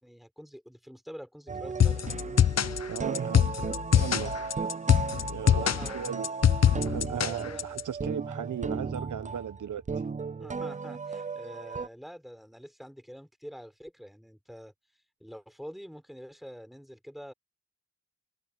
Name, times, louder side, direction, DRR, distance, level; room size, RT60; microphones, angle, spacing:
voice 1, 0.0-2.1 5.4-6.3 7.2-7.8 10.0-14.7 15.2-17.3, equal, ahead, 4.4 m, -46 dB
sound 1, 1.5-11.9, right 5 dB, 25° right, 0.4 m, -35 dB
sound 2, 1.8-7.8, left 9 dB, 60° left, 0.7 m, -24 dB
voice 2, 2.8-3.5 3.9-4.3 5.3-6.3 6.8-9.8, right 9 dB, 90° right, 0.8 m, -36 dB
wide cardioid pair, 120°, 30 cm